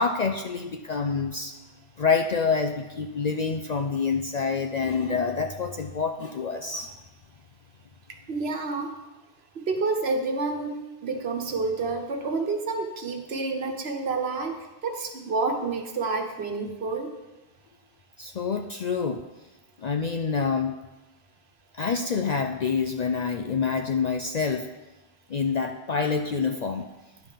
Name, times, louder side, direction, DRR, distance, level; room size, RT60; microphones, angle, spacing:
voice 1, 0.0-1.5 2.0-6.9 18.2-19.2 19.8-20.8 21.7-24.7 25.3-26.9, left 5 dB, 55° left, 5 dB, 0.5 m, -27 dB
voice 2, 8.3-9.0 9.5-17.1, right 3 dB, 65° right, 4 dB, 1.3 m, -29 dB
10.5 x 5.4 x 5.7 m, 1.1 s
omnidirectional pair, 1.1 m